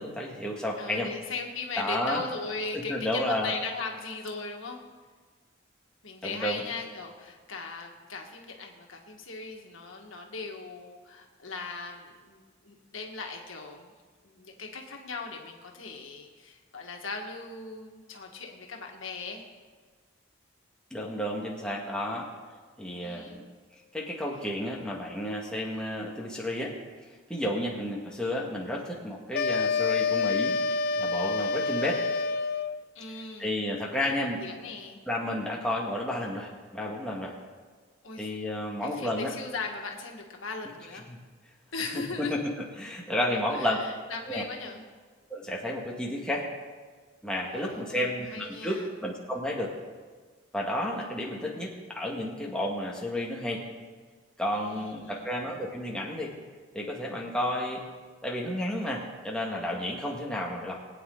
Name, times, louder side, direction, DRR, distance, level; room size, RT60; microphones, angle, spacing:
voice 1, 0.0-1.1 1.8-2.2 2.7-3.5 6.2-6.6 20.9-22.3 22.8-23.4 23.9-26.7 27.3-32.0 33.4-34.4 35.1-37.3 38.2-39.3 41.1-41.2 41.9-43.8 44.3-44.5 45.3-46.5 47.2-49.7 50.5-53.6 54.4-56.3 56.7-57.8 58.2-60.8, left 1 dB, 5° left, -3 dB, 1.8 m, -32 dB
voice 2, 0.8-4.8 6.0-13.9 14.2-19.4 23.0-23.4 33.0-33.6 33.9-35.0 38.0-38.3 38.8-41.1 41.7-42.4 43.3-44.8 47.4-48.9 54.5-55.3, left 4 dB, 85° left, 1 dB, 1.8 m, -38 dB
sound 1, 29.3-32.8, left 4 dB, 50° left, 0.4 m, -27 dB
21.0 x 9.3 x 3.9 m, 1.5 s
head